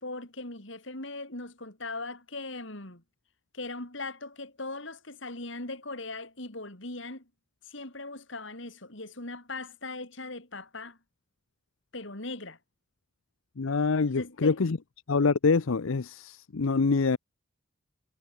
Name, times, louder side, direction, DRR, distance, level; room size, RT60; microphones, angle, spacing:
voice 1, 0.0-3.0 3.5-7.3 7.6-11.0 11.9-12.6 14.1-14.6, left 2 dB, 70° left, 4.7 m, -39 dB
voice 2, 13.6-14.8 15.1-17.2, left 4 dB, 85° left, 0.7 m, -25 dB
head